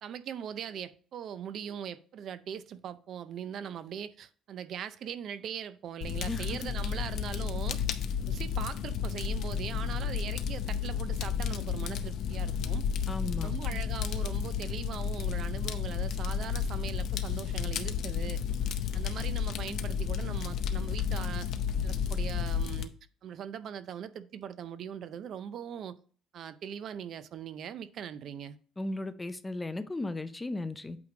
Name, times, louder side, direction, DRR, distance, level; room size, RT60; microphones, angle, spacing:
voice 1, 0.0-7.8 8.3-12.8 13.4-18.4 18.9-21.5 21.8-22.9 23.2-26.0 26.3-28.6, right 8 dB, 50° right, 0.4 m, -40 dB
Fire, 6.0-22.8, left 7 dB, 60° left, 0.6 m, -32 dB
voice 2, 6.3-6.6 13.1-13.5 28.8-31.0, left 2 dB, 10° left, 0.4 m, -36 dB
8.4 x 3.2 x 4.9 m
cardioid pair, 150°, 0 cm